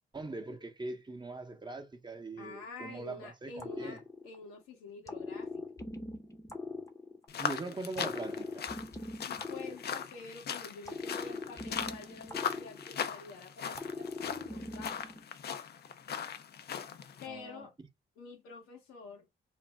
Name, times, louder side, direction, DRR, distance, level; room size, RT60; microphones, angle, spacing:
voice 1, 0.1-4.0 7.4-8.7 17.3-17.7, right 3 dB, 20° right, 0.8 m, -41 dB
voice 2, 2.4-5.6 9.2-15.1 17.2-17.7 18.2-19.3, left 4 dB, 85° left, 0.9 m, -48 dB
sound 1, 3.6-4.6 5.1-7.5 8.0-10.4 10.9-13.3 13.7-15.2, left 3 dB, 15° left, 0.7 m, -41 dB
sound 2, 7.3-17.3, left 8 dB, 50° left, 0.4 m, -39 dB
2.6 x 2.0 x 3.3 m
supercardioid pair, 50°, 21 cm